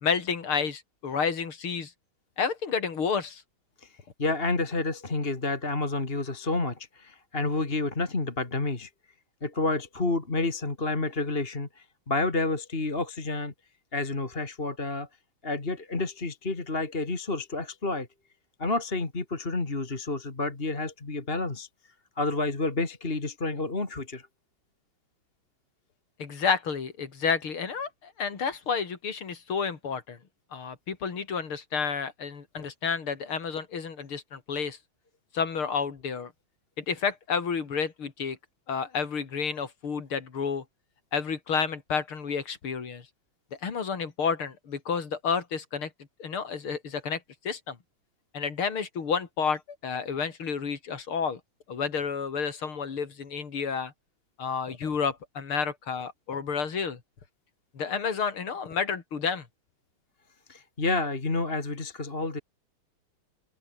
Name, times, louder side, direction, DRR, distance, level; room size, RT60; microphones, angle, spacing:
voice 1, 0.0-1.9 2.4-3.4 26.2-30.2 30.5-34.8 35.3-36.3 36.8-38.4 38.7-40.6 41.1-43.1 43.6-45.9 46.2-47.8 48.3-51.4 51.7-53.9 54.4-57.0 57.8-59.5, left 6 dB, 85° left, 3.6 m, -30 dB
voice 2, 4.2-8.9 9.4-13.5 13.9-15.1 15.4-18.1 18.6-21.7 22.2-24.3 60.5-62.4, left 3 dB, 25° left, 2.7 m, -29 dB
open air
omnidirectional pair, 2.3 m